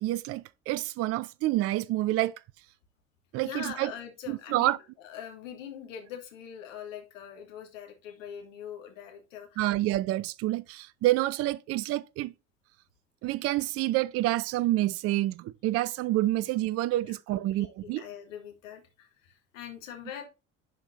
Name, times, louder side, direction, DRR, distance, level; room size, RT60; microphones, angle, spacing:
voice 1, 0.0-2.4 3.3-3.9 4.3-4.8 9.6-12.3 13.2-18.0, right 16 dB, 40° right, 0.4 m, -28 dB
voice 2, 3.4-9.6 17.0-20.2, left 9 dB, 70° left, 1.6 m, -43 dB
10.5 x 4.4 x 2.6 m
figure-of-eight pair, 55°, 40 cm